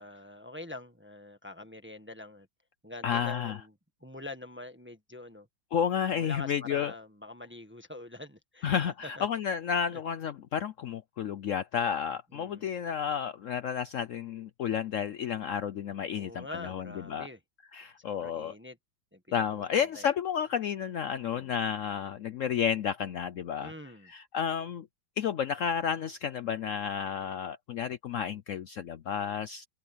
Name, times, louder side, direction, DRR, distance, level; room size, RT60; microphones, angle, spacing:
voice 1, 0.0-2.5 2.8-3.7 4.0-5.5 6.1-8.7 9.2-9.3 9.9-10.0 12.3-12.7 16.1-17.4 18.0-18.8 19.1-20.0 21.3-21.5 23.6-24.1, left 2 dB, 5° right, 1.3 m, -45 dB
voice 2, 3.0-3.6 5.7-6.9 8.6-17.3 17.7-18.5 19.3-23.7 24.0-24.9 25.2-29.7, left 8 dB, 85° left, 0.7 m, -31 dB
omnidirectional pair, 2.1 m